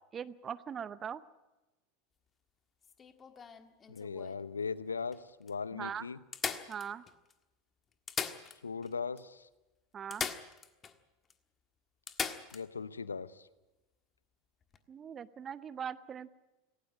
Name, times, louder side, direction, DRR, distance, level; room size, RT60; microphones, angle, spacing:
voice 1, 0.1-1.2 5.7-6.1 6.7-7.0 9.9-10.3 14.9-16.3, right 8 dB, 30° right, 17 dB, 0.7 m, -41 dB
sound 1, 2.8-4.4 5.1-5.2 5.5-5.6 6.3-7.3 7.9-8.9 9.2-9.3 10.1-11.0 11.3-11.4 12.1-12.6 14.6-14.8, left 6 dB, 25° left, 1.5 m, -39 dB
voice 2, 3.9-6.2 8.6-9.5 12.5-13.5, left 5 dB, 85° left, 18 dB, 0.8 m, -39 dB
18.0 x 17.5 x 9.9 m, 1.1 s
figure-of-eight pair, 85°, 0 cm